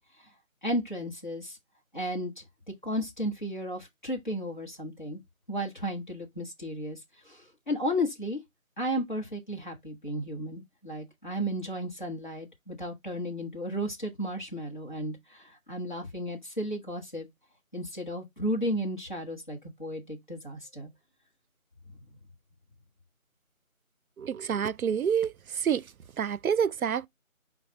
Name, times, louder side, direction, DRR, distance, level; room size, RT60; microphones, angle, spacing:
voice 1, 0.6-1.6 1.9-2.4 2.8-5.2 5.5-7.0 7.3-8.4 8.8-17.3 17.7-20.9, equal, 35° left, 1.1 m, -34 dB
voice 2, 24.2-25.9 26.2-27.1, right 8 dB, 80° right, 0.5 m, -28 dB
4.5 x 4.0 x 2.9 m
figure-of-eight pair, 175°, 42 cm